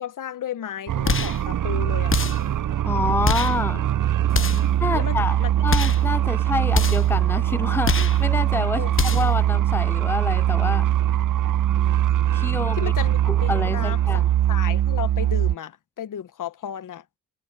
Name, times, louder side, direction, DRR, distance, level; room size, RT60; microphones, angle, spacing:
voice 1, 0.0-2.2 4.4-5.5 8.8-9.2 11.4-12.0 12.7-17.0, left 9 dB, 65° left, 1.3 m, -34 dB
sound 1, 0.9-15.6, right 12 dB, 60° right, 1.0 m, -22 dB
sound 2, 1.0-1.4 2.1-2.5 3.2-3.6 4.3-4.7 5.7-6.1 6.7-7.1 7.8-8.2 8.9-9.4, left 6 dB, 35° left, 1.1 m, -25 dB
voice 2, 2.8-3.9 4.8-5.4 5.6-10.9 12.3-12.8 13.3-14.3, left 3 dB, 5° left, 0.6 m, -27 dB
Truck, 3.3-11.6, right 2 dB, 20° right, 6.4 m, -46 dB
supercardioid pair, 45°, 35 cm